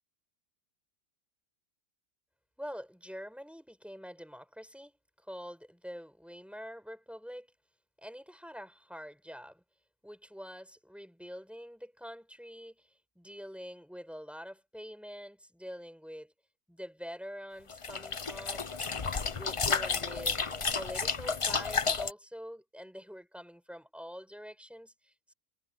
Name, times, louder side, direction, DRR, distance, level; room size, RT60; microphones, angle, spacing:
voice 1, 2.6-7.5 8.0-9.6 10.0-16.3 16.7-18.7 19.3-25.3, equal, ahead, 7.2 m, -46 dB
sound 1, 17.7-22.1, left 5 dB, 30° left, 0.7 m, -32 dB
omnidirectional pair, 1.3 m